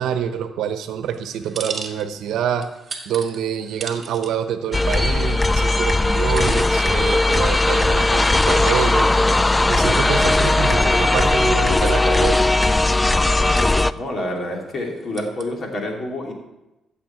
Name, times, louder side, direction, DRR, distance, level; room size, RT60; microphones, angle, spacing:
voice 1, 0.0-2.7 3.1-9.1 9.7-12.4, right 9 dB, 80° right, 9 dB, 0.9 m, -26 dB
sound 1, 1.1-2.3 2.6-4.3 5.0-5.1 6.1-6.7 7.1-7.2 7.8-9.4 9.7-9.8 10.4-10.5 10.8-11.4 13.3-14.0 14.8-15.5, right 5 dB, 40° right, 1.6 m, -37 dB
sound 2, 4.7-13.9, left 2 dB, 20° left, 0.3 m, -18 dB
voice 2, 13.1-16.3, left 1 dB, 45° left, 1 dB, 2.8 m, -29 dB
14.5 x 7.1 x 4.5 m, 0.95 s
cardioid pair, 90°, 0 cm